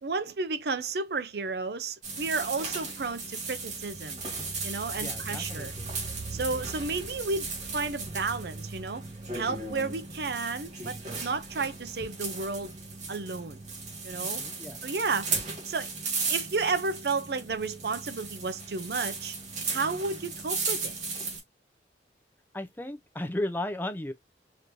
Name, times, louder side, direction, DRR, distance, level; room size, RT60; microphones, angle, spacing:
voice 1, 0.0-4.2 4.6-5.7 6.3-9.0 9.3-12.7 13.1-13.6 14.0-14.4 14.8-15.3 15.7-15.9 16.3-19.4 19.7-20.9, right 4 dB, 60° right, 0.5 m, -32 dB
sound 1, 2.0-21.4, right 4 dB, 40° right, 2.1 m, -36 dB
voice 2, 5.0-6.0 6.3-6.7 14.2-14.8 22.5-24.1, left 1 dB, 10° left, 0.5 m, -35 dB
5.1 x 2.6 x 2.9 m
head